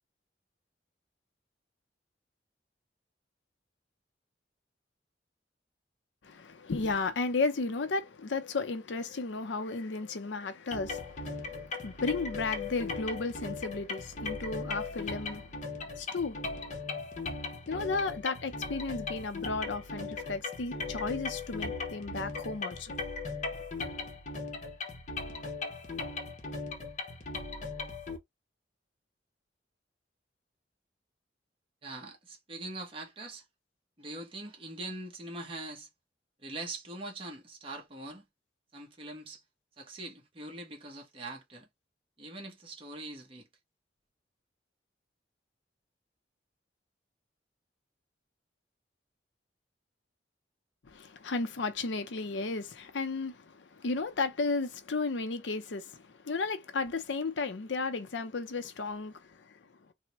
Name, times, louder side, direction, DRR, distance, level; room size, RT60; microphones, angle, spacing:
voice 1, 6.2-16.4 17.7-23.0 50.9-59.6, left 3 dB, 80° left, 0.6 m, -34 dB
sound 1, 10.7-28.2, left 3 dB, 40° left, 0.7 m, -38 dB
voice 2, 31.8-33.4 34.0-35.9 36.4-38.2 38.7-39.4 39.8-41.7 42.2-43.5, right 2 dB, 30° right, 0.9 m, -42 dB
3.4 x 2.1 x 2.8 m
head